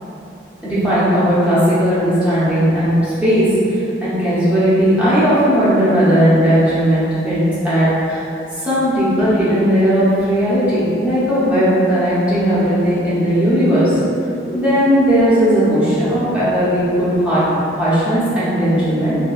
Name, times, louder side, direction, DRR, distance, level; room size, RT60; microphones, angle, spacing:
voice 1, 0.6-8.2 8.6-14.0 14.4-17.4 17.7-19.2, equal, 5° right, -13 dB, 0.9 m, -16 dB
4.3 x 2.2 x 2.4 m, 2.8 s
head